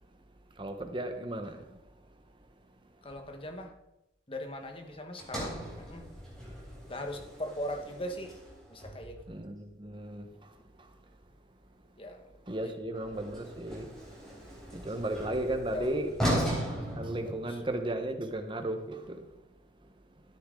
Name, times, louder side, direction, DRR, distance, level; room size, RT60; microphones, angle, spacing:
voice 1, 0.6-1.8 9.3-11.0 12.5-14.1 14.7-19.4, right 1 dB, 25° right, 1.2 m, -36 dB
voice 2, 3.0-3.7 4.3-6.1 6.9-8.4 8.7-9.2 12.0-12.2 12.6-12.7 15.7-16.2 17.5-17.6, left 1 dB, 30° left, 1.4 m, -39 dB
Sliding door, 5.2-9.4 12.9-17.9, equal, 5° left, 4.0 m, -37 dB
13.0 x 9.7 x 3.9 m
head